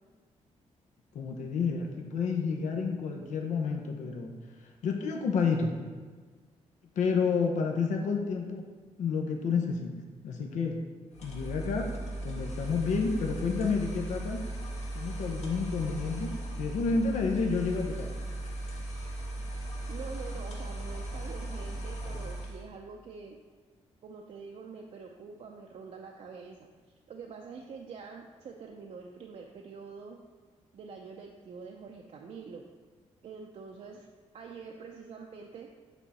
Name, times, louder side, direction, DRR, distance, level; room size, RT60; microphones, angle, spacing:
voice 1, 1.1-4.3 4.8-5.7 7.0-8.6 9.0-9.9 10.2-10.8 11.2-11.9 12.2-14.4 14.9-16.3 16.6-18.1, left 5 dB, 85° left, 2 dB, 0.8 m, -30 dB
sound 1, 11.1-22.7, right 1 dB, 65° left, 1.5 m, -37 dB
voice 2, 19.9-23.4 24.0-26.7 27.1-30.2 30.7-32.7 33.2-34.1 34.3-35.7, right 5 dB, 65° right, 1 dB, 0.6 m, -45 dB
8.2 x 3.6 x 4.2 m, 1.5 s
cardioid pair, 95°, 12 cm